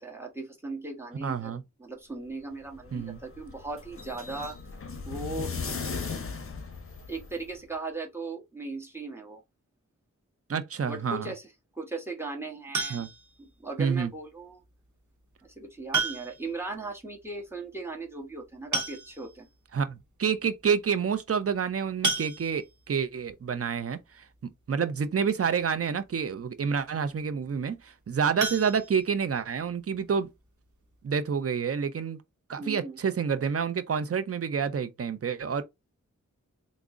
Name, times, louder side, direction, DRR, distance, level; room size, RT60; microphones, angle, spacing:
voice 1, 0.0-4.6 5.1-5.5 7.1-9.4 10.9-11.5 11.7-13.1 13.4-14.6 15.4-19.5 32.6-33.0, right 3 dB, 10° right, 1.2 m, -38 dB
voice 2, 1.2-1.6 2.9-3.2 10.5-11.3 12.9-13.1 13.8-14.1 19.7-24.2 24.7-30.3 31.0-32.2 32.5-35.6, right 6 dB, 50° right, 0.5 m, -28 dB
sound 1, 2.5-7.6, left 4 dB, 45° left, 0.6 m, -37 dB
sound 2, 12.7-13.4 14.9-15.0 15.9-16.5 16.8-16.9 17.2-17.3 18.3-18.4 18.7-19.4 20.0-20.1 20.4-20.6 22.0-22.9 28.4-29.6 29.9-30.0 30.5-30.6 30.9-31.0, right 3 dB, 70° right, 0.8 m, -32 dB
3.6 x 2.0 x 3.5 m
wide cardioid pair, 45°, 30 cm